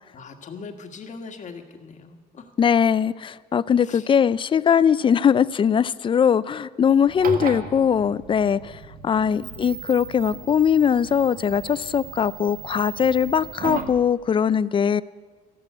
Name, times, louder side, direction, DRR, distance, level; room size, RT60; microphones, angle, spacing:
voice 1, 0.1-2.5 3.8-4.1 7.5-7.7 9.2-9.7, left 5 dB, 45° left, 6 dB, 1.7 m, -41 dB
voice 2, 2.6-15.0, left 7 dB, 30° left, 18 dB, 0.4 m, -21 dB
Television Switch High Ringing, 7.1-14.0, right 6 dB, 55° right, 1.4 m, -36 dB
14.0 x 11.0 x 8.2 m, 1.5 s
cardioid pair, 110°, 17 cm